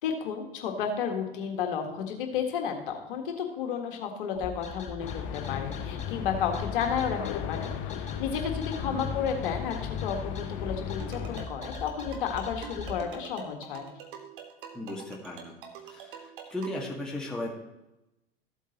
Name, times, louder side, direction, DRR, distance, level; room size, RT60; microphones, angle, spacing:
voice 1, 0.0-7.2 7.5-13.9, left 7 dB, 60° left, 4 dB, 1.7 m, -32 dB
sound 1, 4.4-13.0, left 5 dB, 25° left, 3.4 m, -40 dB
sound 2, 5.0-11.5, left 9 dB, 45° left, 0.8 m, -36 dB
sound 3, 11.0-16.9, right 7 dB, 60° right, 1.6 m, -46 dB
voice 2, 14.7-15.6 15.8-17.5, left 1 dB, ahead, -4 dB, 1.8 m, -36 dB
14.5 x 8.1 x 3.0 m, 0.95 s
figure-of-eight pair, 75°, 30 cm